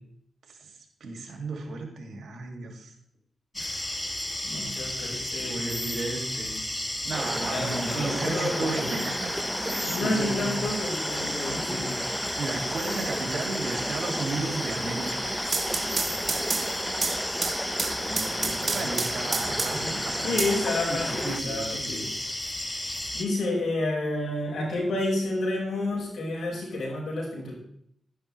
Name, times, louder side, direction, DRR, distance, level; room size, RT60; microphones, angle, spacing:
voice 1, 0.5-2.9 5.5-6.7 7.0-9.3 9.6-10.6 11.7-11.8 12.4-15.4 18.7-20.4 20.9-22.1, right 3 dB, 75° right, 2 dB, 2.4 m, -34 dB
voice 2, 3.5-5.9 7.5-9.0 9.8-12.1 17.9-19.4 19.7-19.9 20.2-22.1 23.1-27.5, left 2 dB, 75° left, -2 dB, 5.4 m, -31 dB
sound 1, 3.5-23.2, left 1 dB, 15° left, 1.4 m, -33 dB
sound 2, 7.1-21.4, right 1 dB, 10° right, 0.7 m, -34 dB
sound 3, 15.3-19.9 20.4-21.3, right 4 dB, 45° right, 1.3 m, -30 dB
11.5 x 11.0 x 3.3 m, 0.69 s
cardioid pair, 50°, 0 cm